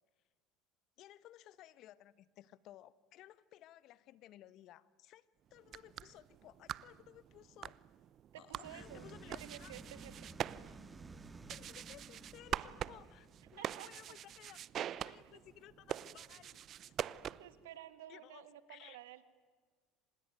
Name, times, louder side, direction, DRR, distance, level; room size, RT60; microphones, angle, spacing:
voice 1, 1.0-5.3 5.5-7.8 8.4-9.8 11.5-16.9 18.1-19.0, left 13 dB, 55° left, 18 dB, 1.0 m, -58 dB
sound 1, 5.6-17.6, right 10 dB, 45° right, 0.7 m, -45 dB
voice 2, 8.3-10.3 13.6-13.9 17.4-19.2, right 12 dB, 85° right, 13 dB, 1.8 m, -52 dB
sound 2, 8.6-13.7, right 3 dB, 20° right, 1.8 m, -54 dB
25.5 x 20.5 x 9.3 m, 1.5 s
supercardioid pair, 90°, 0 cm